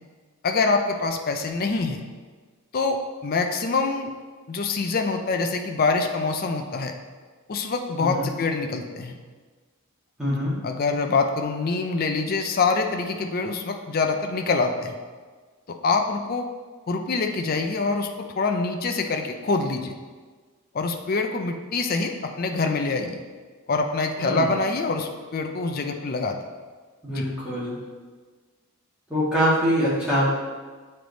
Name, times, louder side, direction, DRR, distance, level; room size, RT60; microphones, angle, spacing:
voice 1, 0.4-2.0 2.7-4.1 4.5-6.9 7.5-9.2 10.2-10.3 10.6-15.0 15.7-16.5 16.9-19.9 20.7-23.2 23.7-26.4 27.1-27.3, left 3 dB, 40° left, 4 dB, 0.4 m, -25 dB
voice 2, 8.0-8.3 10.2-10.6 24.2-24.5 27.0-27.7 29.1-30.3, equal, 5° right, -9 dB, 1.7 m, -24 dB
7.7 x 3.3 x 4.0 m, 1.4 s
head